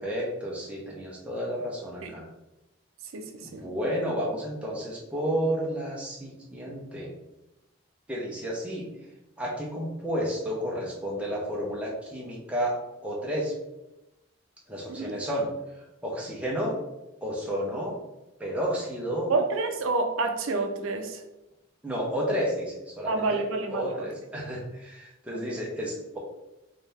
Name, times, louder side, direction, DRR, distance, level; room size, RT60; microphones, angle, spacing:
voice 1, 0.0-2.3 3.4-7.1 8.1-8.8 9.4-13.5 14.7-15.5 16.0-16.7 17.2-18.0 18.4-19.3 21.8-23.4 23.7-26.2, equal, 5° right, -4 dB, 0.7 m, -31 dB
voice 2, 3.1-3.6 14.9-15.2 19.3-21.2 23.1-24.1 25.5-25.6, right 3 dB, 75° right, 5 dB, 0.4 m, -29 dB
3.3 x 2.7 x 3.3 m, 0.95 s
head